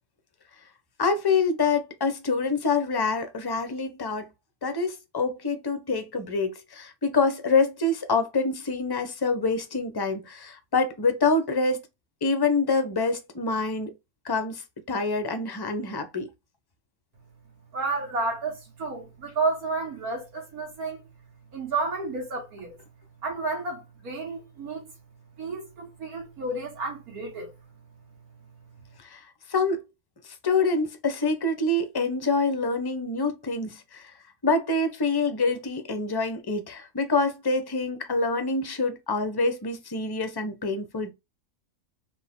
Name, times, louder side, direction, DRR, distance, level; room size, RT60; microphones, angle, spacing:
voice 1, 1.0-4.3 4.6-11.8 12.2-13.9 14.2-14.6 14.9-16.3 29.1-29.2 29.5-29.8 30.4-34.1 34.4-41.1, left 3 dB, 25° left, 0.5 m, -26 dB
voice 2, 17.7-21.0 21.5-22.8 23.2-24.9 25.4-27.5, right 3 dB, 70° right, 2.1 m, -31 dB
4.3 x 2.7 x 3.6 m
omnidirectional pair, 1.6 m